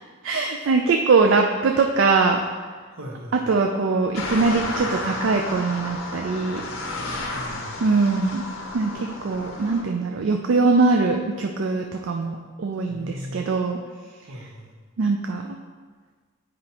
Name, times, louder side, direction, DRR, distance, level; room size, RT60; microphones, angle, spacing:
voice 1, 0.2-2.4 3.3-6.6 7.8-8.4 8.7-13.8 15.0-15.6, right 4 dB, 60° right, 3 dB, 0.4 m, -22 dB
voice 2, 2.9-3.4 7.3-7.7 12.9-13.5 14.3-14.7, equal, 80° right, -1 dB, 1.2 m, -38 dB
sound 1, 4.1-9.8, left 2 dB, 65° left, 0.8 m, -32 dB
7.7 x 5.0 x 2.9 m, 1.5 s
head